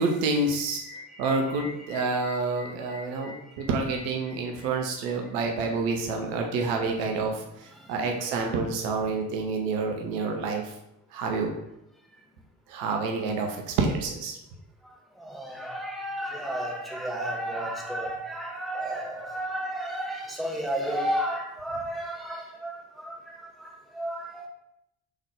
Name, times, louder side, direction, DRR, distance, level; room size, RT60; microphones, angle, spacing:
voice 1, 0.0-0.8 1.2-10.6 11.1-11.5 12.7-14.4, right 3 dB, 65° right, 2 dB, 0.7 m, -28 dB
voice 2, 0.8-3.4 8.0-8.1 15.2-23.7 23.9-24.5, right 1 dB, ahead, -3 dB, 1.0 m, -33 dB
3.6 x 3.1 x 3.5 m, 0.82 s
figure-of-eight pair, 45°, 49 cm